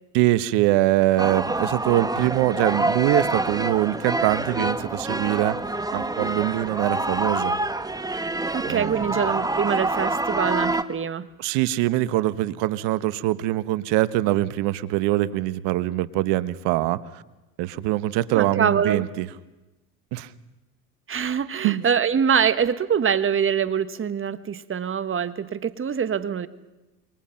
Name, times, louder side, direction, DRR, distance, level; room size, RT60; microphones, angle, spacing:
voice 1, 0.1-5.6 5.9-7.6 8.6-9.2 11.4-17.2 17.6-19.3 20.1-20.3 21.6-21.8, right 16 dB, 65° right, 16 dB, 1.3 m, -23 dB
sound 1, 1.2-10.8, right 2 dB, 10° right, 1.4 m, -26 dB
voice 2, 8.5-11.3 18.3-19.0 21.1-26.5, right 7 dB, 30° right, 13 dB, 1.4 m, -24 dB
27.5 x 23.0 x 5.8 m, 1.0 s
supercardioid pair, 85°, 44 cm